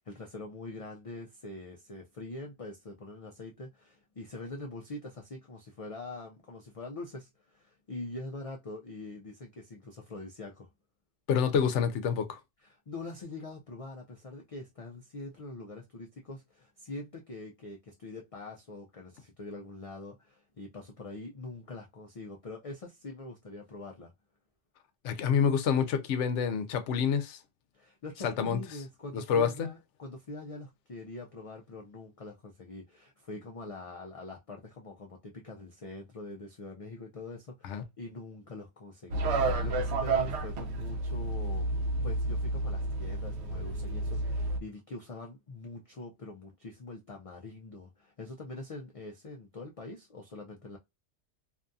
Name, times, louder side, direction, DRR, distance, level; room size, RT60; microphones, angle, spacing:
voice 1, 0.1-10.7 12.6-24.1 27.7-41.7 42.0-50.8, left 2 dB, 65° left, 0.3 m, -44 dB
voice 2, 11.3-12.4 25.0-27.4 28.2-28.6 29.1-29.5 37.6-37.8, left 7 dB, 80° left, 0.9 m, -27 dB
sound 1, 39.1-44.6, right 2 dB, 70° right, 0.8 m, -31 dB
2.6 x 2.3 x 2.5 m
omnidirectional pair, 1.2 m